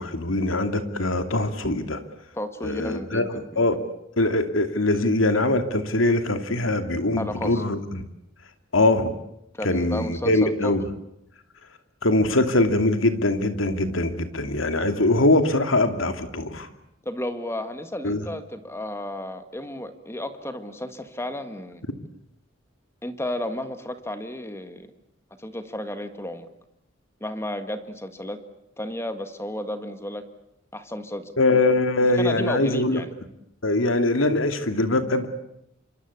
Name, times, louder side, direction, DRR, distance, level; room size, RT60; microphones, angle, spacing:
voice 1, 0.0-2.0 2.6-3.8 4.2-8.0 8.7-9.1 9.6-10.8 12.0-16.7 18.0-18.2 31.4-33.0 33.6-35.3, left 2 dB, 85° left, 8 dB, 2.6 m, -22 dB
voice 2, 2.3-3.6 7.2-7.6 9.5-10.8 17.1-21.8 23.0-24.9 25.4-26.5 27.2-28.4 28.8-30.2 30.7-31.3 32.0-33.1, left 1 dB, 15° left, 9 dB, 1.7 m, -33 dB
27.0 x 25.0 x 8.4 m, 0.82 s
head